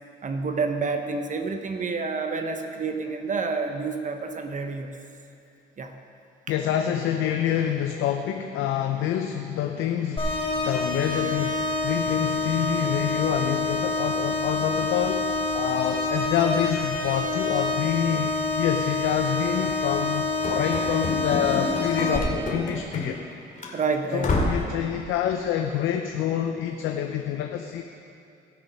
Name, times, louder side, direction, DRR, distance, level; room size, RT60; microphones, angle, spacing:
voice 1, 0.2-5.0 5.8-5.9 23.7-24.5, right 4 dB, 40° right, 5 dB, 0.9 m, -29 dB
voice 2, 6.5-23.2 24.1-27.8, left 9 dB, 90° left, 4 dB, 0.6 m, -27 dB
sound 1, 10.2-22.2, left 2 dB, 25° left, 3.2 m, -27 dB
Run / Slam, 20.4-23.3 23.6-23.7 24.2-24.7, left 2 dB, 40° left, 2.4 m, -29 dB
18.0 x 6.2 x 5.5 m, 2.6 s
cardioid pair, 90°, 20 cm